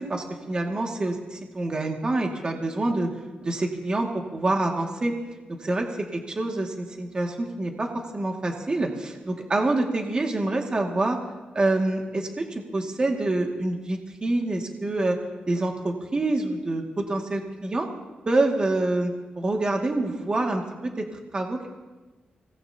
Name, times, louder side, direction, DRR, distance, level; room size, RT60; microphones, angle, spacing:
voice 1, 0.0-3.1 3.4-5.1 5.6-5.9 6.1-11.2 11.5-12.4 12.7-15.2 15.5-17.9 18.3-21.1 21.3-21.7, right 2 dB, 30° right, 1 dB, 2.0 m, -26 dB
24.5 x 19.0 x 2.8 m, 1.2 s
wide cardioid pair, 120°, 3 cm